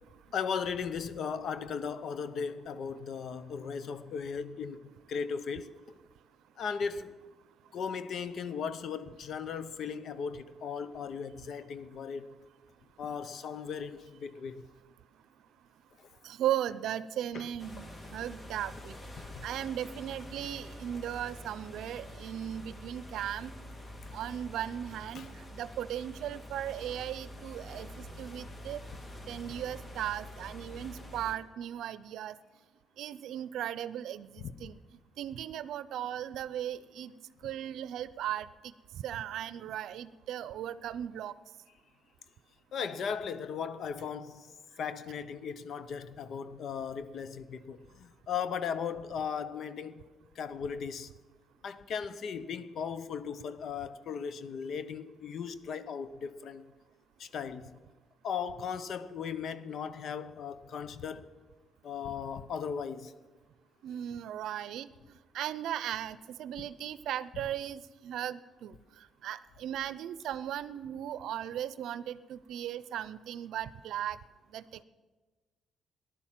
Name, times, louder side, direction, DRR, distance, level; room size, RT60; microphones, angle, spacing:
voice 1, 0.3-5.8 6.6-7.1 7.7-12.3 13.0-14.6 17.3-17.5 19.3-19.5 25.1-25.3 34.4-34.5 42.7-44.5 44.8-50.0 50.4-51.1 51.6-56.6 57.2-57.8 58.2-61.3 61.8-63.1, left 6 dB, 65° left, 0.8 m, -37 dB
voice 2, 16.2-19.0 19.4-23.5 24.1-28.8 29.3-32.4 33.0-34.8 35.2-37.1 37.4-41.3 63.8-74.2 74.5-74.6, right 11 dB, 80° right, 0.5 m, -37 dB
sound 1, 17.6-31.3, left 1 dB, 30° left, 1.8 m, -46 dB
14.5 x 11.5 x 7.5 m
cardioid pair, 90°, 0 cm